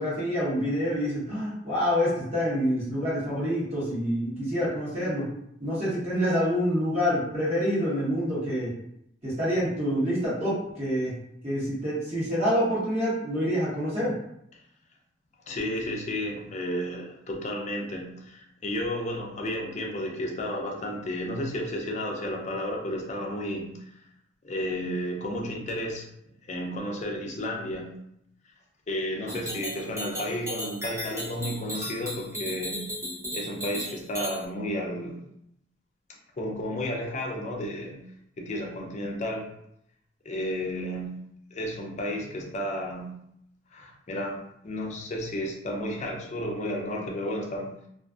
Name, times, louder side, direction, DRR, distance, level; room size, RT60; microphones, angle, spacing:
voice 1, 0.0-5.3 5.6-8.7 9.2-11.1 11.4-14.1, equal, 35° right, -8 dB, 1.1 m, -27 dB
voice 2, 15.5-23.8 24.4-26.1 26.5-27.9 28.9-32.9 33.3-35.2 36.4-38.0 38.4-39.5 40.3-41.2 41.5-43.1 43.7-47.7, left 1 dB, 35° left, 0 dB, 0.4 m, -32 dB
sound 1, 29.3-34.4, equal, 15° right, 0.6 m, -35 dB
2.5 x 2.4 x 2.3 m, 0.75 s
head